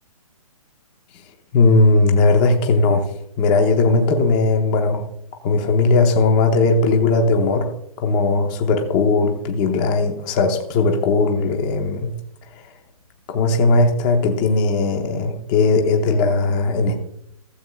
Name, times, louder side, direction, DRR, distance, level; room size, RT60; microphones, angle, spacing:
voice 1, 1.5-3.1 3.4-5.1 5.4-7.7 8.0-12.1 13.3-16.9, left 3 dB, 15° left, 4 dB, 0.7 m, -18 dB
16.0 x 7.7 x 2.3 m, 0.75 s
hypercardioid pair, 175°, 18 cm